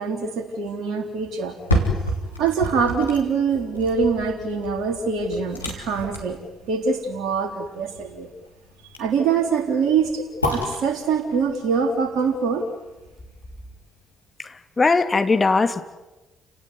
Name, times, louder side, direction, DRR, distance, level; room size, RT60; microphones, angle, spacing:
voice 1, 0.0-1.5 2.4-8.3 9.0-12.6, right 5 dB, 55° right, 4 dB, 3.8 m, -24 dB
sound 1, 1.4-13.5 13.9-14.0, equal, 85° left, 3.3 m, -31 dB
voice 2, 14.4-15.8, left 3 dB, 25° left, 8 dB, 2.4 m, -20 dB
29.5 x 19.0 x 9.6 m, 1.0 s
figure-of-eight pair, 45°, 0 cm